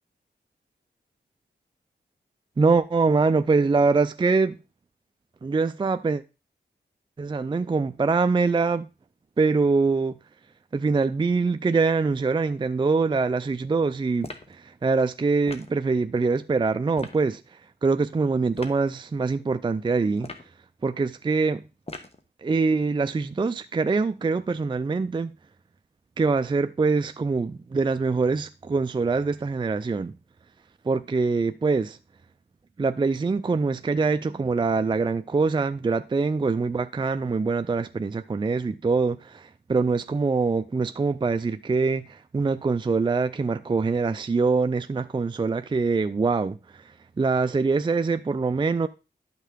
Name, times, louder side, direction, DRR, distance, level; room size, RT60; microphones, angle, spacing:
voice 1, 2.6-4.6 5.4-6.2 7.2-8.9 9.4-10.2 10.7-20.3 20.8-21.6 22.4-25.3 26.2-30.1 30.8-32.0 32.8-48.9, right 4 dB, 25° right, 0.4 m, -24 dB
sound 1, 14.2-14.6 15.5-15.8 16.9-17.2 18.5-18.8 20.2-20.6 21.9-22.2, left 3 dB, 35° left, 1.2 m, -39 dB
11.0 x 5.8 x 3.6 m
wide cardioid pair, 100°, 19 cm